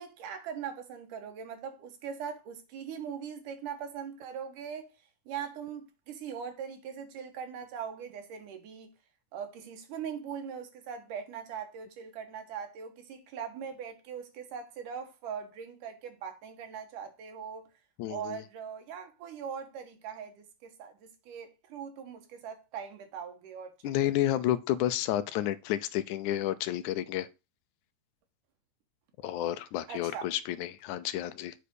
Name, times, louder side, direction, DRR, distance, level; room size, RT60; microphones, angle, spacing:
voice 1, 0.0-4.9 5.3-8.9 9.3-17.7 18.1-24.0 29.9-30.3, right 7 dB, 85° right, 3.0 m, -41 dB
voice 2, 18.0-18.4 23.8-27.3 29.2-31.6, left 13 dB, 80° left, 2.0 m, -30 dB
8.0 x 4.9 x 6.3 m
omnidirectional pair, 3.6 m